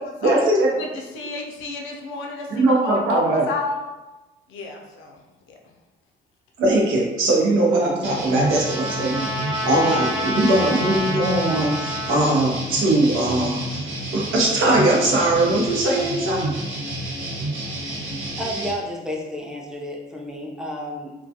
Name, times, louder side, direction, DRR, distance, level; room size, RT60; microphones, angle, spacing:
voice 1, 0.2-0.7 2.5-3.4 6.6-9.3 9.6-13.6 14.1-16.5, right 2 dB, 90° right, -2 dB, 0.7 m, -20 dB
voice 2, 0.7-3.8 4.5-5.2 5.5-5.6, left 3 dB, 90° left, 1 dB, 0.5 m, -32 dB
Trumpet, 7.7-12.3, equal, 20° right, 0.9 m, -29 dB
sound 1, 8.0-18.7, right 1 dB, 70° right, 1.1 m, -30 dB
voice 3, 17.9-21.1, equal, 5° right, -1 dB, 0.5 m, -32 dB
2.2 x 2.2 x 2.7 m, 1.1 s
cardioid pair, 90°, 20 cm